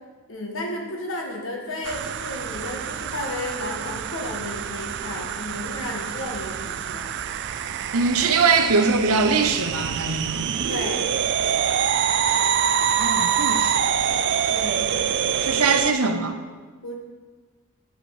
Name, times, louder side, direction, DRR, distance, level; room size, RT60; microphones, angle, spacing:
voice 1, 0.3-7.1 10.7-11.1 14.5-14.9 16.8-16.9, left 1 dB, 65° left, 1.6 m, -33 dB
sound 1, 1.8-15.9, right 8 dB, 55° right, 0.4 m, -25 dB
voice 2, 7.9-10.5 13.0-13.8 15.4-16.4, right 4 dB, 85° right, 0.8 m, -22 dB
8.8 x 5.4 x 6.5 m
head